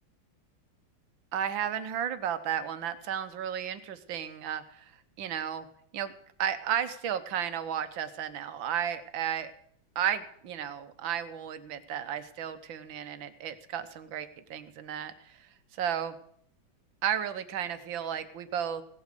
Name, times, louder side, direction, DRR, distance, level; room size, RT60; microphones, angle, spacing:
voice 1, 1.3-4.9 5.2-5.7 5.9-6.1 6.4-9.5 10.0-16.2 17.0-18.8, right 9 dB, 75° right, 11 dB, 1.7 m, -33 dB
17.5 x 8.1 x 6.8 m, 0.65 s
omnidirectional pair, 2.2 m